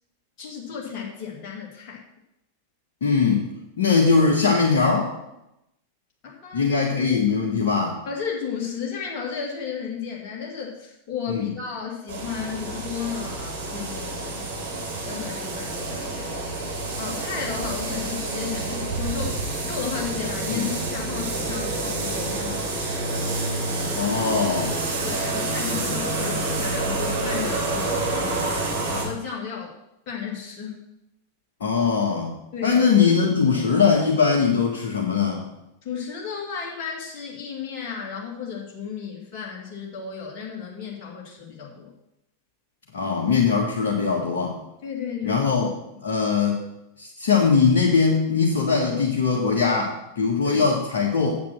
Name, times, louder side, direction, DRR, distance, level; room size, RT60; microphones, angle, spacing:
voice 1, 0.4-2.0 6.2-6.8 8.1-14.5 15.1-16.3 17.0-23.2 25.0-28.1 28.4-29.7 30.1-30.8 32.5-32.8 33.5-33.6 35.8-41.9 44.8-45.5 45.9-46.1 50.4-50.6, left 6 dB, 40° left, -2 dB, 2.4 m, -33 dB
voice 2, 3.0-3.5 3.8-5.1 6.5-8.0 11.3-11.5 20.5-20.7 23.9-24.8 31.6-35.5 42.9-44.6 45.2-45.7 46.0-46.6 47.0-51.3, left 5 dB, 60° left, -1 dB, 1.6 m, -21 dB
sound 1, 12.1-29.1, right 2 dB, 55° right, 4.6 m, -28 dB
9.3 x 7.5 x 6.1 m, 0.87 s
figure-of-eight pair, 90°, 0 cm